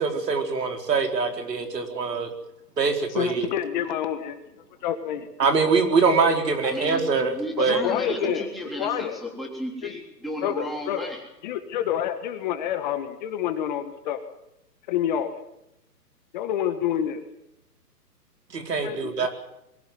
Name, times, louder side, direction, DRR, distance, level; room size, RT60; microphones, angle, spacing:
voice 1, 0.0-2.3 2.8-3.5 5.4-7.8 8.2-8.4 18.5-19.3, right 4 dB, 75° right, 5 dB, 4.5 m, -23 dB
voice 2, 3.1-5.3 7.8-8.5 8.8-9.2 9.8-9.9 10.4-11.1 11.4-14.2 14.9-15.3 16.3-17.2 18.8-19.3, left 10 dB, 25° left, 8 dB, 1.5 m, -28 dB
voice 3, 6.6-7.0 7.3-11.2, equal, ahead, 1 dB, 3.6 m, -34 dB
22.5 x 16.5 x 9.4 m, 0.85 s
hypercardioid pair, 155°, 49 cm